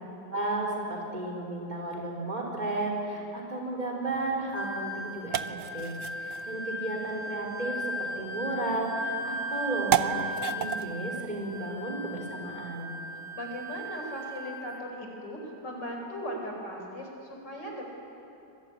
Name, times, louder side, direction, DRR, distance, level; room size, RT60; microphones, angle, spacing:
voice 1, 0.3-12.9, right 2 dB, 25° right, -1 dB, 4.4 m, -33 dB
sound 1, 4.1-12.7, right 9 dB, 60° right, 1.0 m, -36 dB
Wind instrument woodwind instrument, 4.5-14.9, right 1 dB, 45° left, 2.4 m, -37 dB
voice 2, 13.3-17.9, equal, 80° left, 2 dB, 5.3 m, -38 dB
25.5 x 21.5 x 9.6 m, 3.0 s
omnidirectional pair, 1.9 m